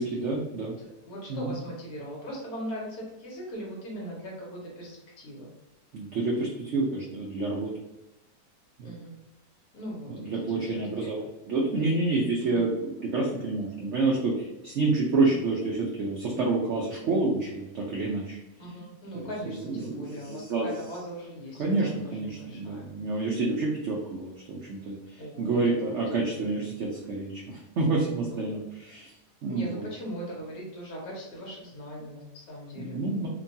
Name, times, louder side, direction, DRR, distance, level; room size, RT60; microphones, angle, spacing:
voice 1, 0.0-0.7 1.3-1.5 5.9-7.7 8.8-8.9 10.1-18.4 19.1-20.7 21.6-29.1 29.4-29.9 32.8-33.3, right 3 dB, 75° right, -3 dB, 0.6 m, -28 dB
voice 2, 0.8-5.5 8.8-9.2 9.7-11.1 12.4-12.7 18.6-22.9 25.2-25.7 26.1-26.6 28.3-28.6 29.5-33.0, equal, 65° left, -3 dB, 1.3 m, -40 dB
3.0 x 2.2 x 2.6 m, 0.98 s
omnidirectional pair, 1.8 m